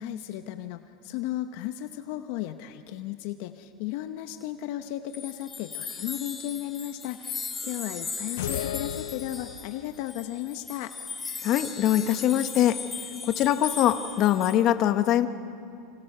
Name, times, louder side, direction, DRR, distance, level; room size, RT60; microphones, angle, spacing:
voice 1, 0.0-10.9, left 13 dB, 60° left, 8 dB, 1.0 m, -35 dB
sound 1, 5.1-14.6, left 5 dB, 15° left, 2.5 m, -38 dB
sound 2, 8.4-9.9, left 11 dB, 80° left, 0.6 m, -34 dB
voice 2, 11.4-12.8 13.3-15.3, left 12 dB, 40° left, 9 dB, 1.2 m, -23 dB
27.5 x 27.0 x 6.7 m, 2.4 s
supercardioid pair, 140°, 0 cm